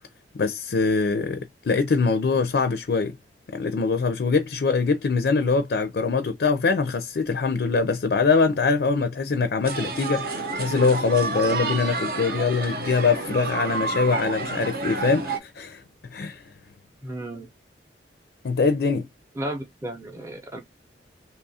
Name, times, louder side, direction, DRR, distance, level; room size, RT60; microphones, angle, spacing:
voice 1, 0.3-3.2 3.5-15.8 16.1-16.4 18.4-19.1, left 4 dB, 65° left, 0.4 m, -23 dB
sound 1, 9.6-15.4, right 3 dB, 60° right, 0.7 m, -29 dB
voice 2, 17.0-17.5 19.4-20.6, right 1 dB, 15° right, 0.6 m, -33 dB
2.9 x 2.4 x 4.0 m
head